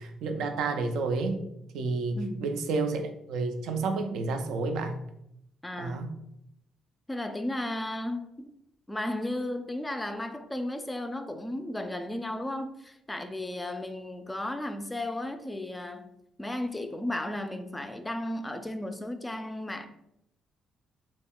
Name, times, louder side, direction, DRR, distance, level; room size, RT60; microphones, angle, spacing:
voice 1, 0.0-1.4 1.7-5.0 5.8-6.1, right 3 dB, 85° right, 0.3 m, -30 dB
voice 2, 2.1-2.5 5.6-6.0 7.1-8.5 8.9-16.1 16.4-19.9, left 1 dB, 15° left, 0.3 m, -34 dB
2.2 x 2.1 x 3.6 m
cardioid pair, 90°, 0 cm